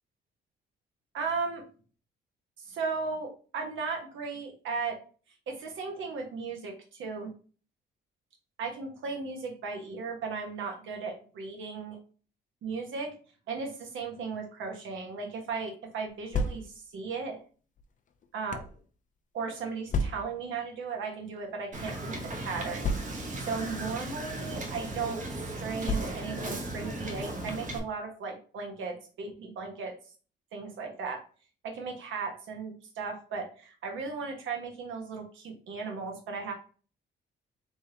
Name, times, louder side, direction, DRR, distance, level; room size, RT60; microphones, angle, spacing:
voice 1, 1.1-1.6 2.6-5.0 5.5-7.3 8.6-12.0 12.6-13.1 13.5-17.4 18.3-18.6 19.3-29.9 30.5-31.2 31.6-36.5, right 4 dB, 80° right, 2 dB, 1.2 m, -36 dB
sound 1, 16.1-17.0 17.8-18.8 19.9-20.5 21.4-21.5 21.8-21.9 22.8-23.5 24.4-24.6 25.8-26.5, left 2 dB, 40° left, 0.5 m, -32 dB
Wind / Boat Water vehicle, 21.7-27.8, right 1 dB, 40° right, 0.9 m, -37 dB
3.4 x 3.4 x 2.8 m, 0.39 s
cardioid pair, 90°, 20 cm